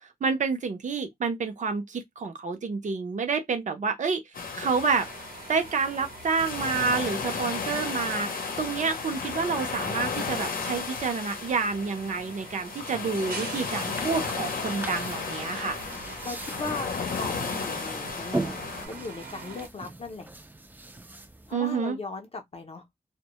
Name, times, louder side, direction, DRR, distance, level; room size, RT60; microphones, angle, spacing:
voice 1, 0.2-4.2 4.5-5.1 5.5-15.8 21.5-22.0, right 5 dB, 60° right, 0.6 m, -28 dB
sound 1, 4.3-18.9, left 5 dB, 85° left, 0.6 m, -34 dB
sound 2, 5.0-19.7, right 4 dB, 90° right, 0.9 m, -44 dB
sound 3, 13.9-21.5, right 2 dB, 15° right, 0.3 m, -39 dB
voice 2, 16.2-20.3 21.5-22.8, left 3 dB, 45° left, 0.6 m, -38 dB
2.1 x 2.0 x 2.8 m
wide cardioid pair, 140°, 15 cm